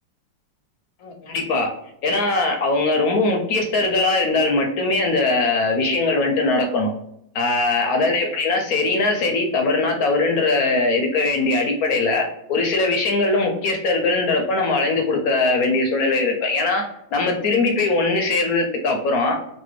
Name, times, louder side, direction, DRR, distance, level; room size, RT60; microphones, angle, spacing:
voice 1, 1.0-1.7 2.0-6.9 7.3-16.8 17.1-19.3, left 3 dB, 65° left, 3 dB, 0.9 m, -21 dB
3.2 x 2.6 x 3.1 m, 0.77 s
omnidirectional pair, 2.0 m